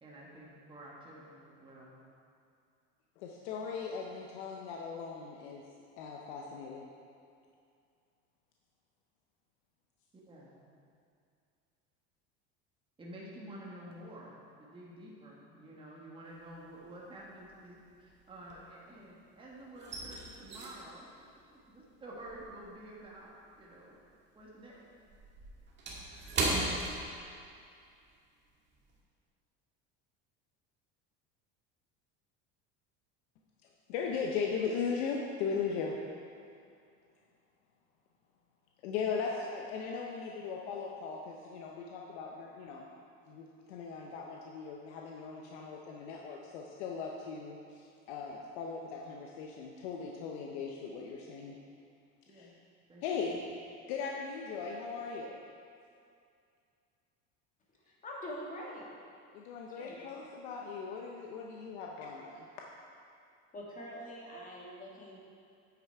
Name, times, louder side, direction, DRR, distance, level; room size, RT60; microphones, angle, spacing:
voice 1, 0.0-1.9 10.1-10.6 13.0-21.1 21.5-24.0 24.3-24.9 52.3-52.5 52.9-53.4, right 1 dB, 15° right, -5 dB, 1.5 m, -50 dB
voice 2, 3.2-5.6 6.0-6.9 33.9-36.0 38.8-42.9 43.3-51.6 52.3-52.5 53.0-53.4 53.9-55.4 59.3-62.5, left 5 dB, 90° left, 0 dB, 0.8 m, -38 dB
sound 1, 16.3-16.9 17.2-19.2 19.4-24.1 24.4-27.7 28.0-28.2 28.7-28.9, right 2 dB, 35° right, 1.8 m, -38 dB
voice 3, 57.8-58.9 59.7-60.1 63.5-65.2, equal, 25° left, -3 dB, 1.8 m, -44 dB
8.8 x 6.1 x 4.5 m, 2.4 s
cardioid pair, 135°, 32 cm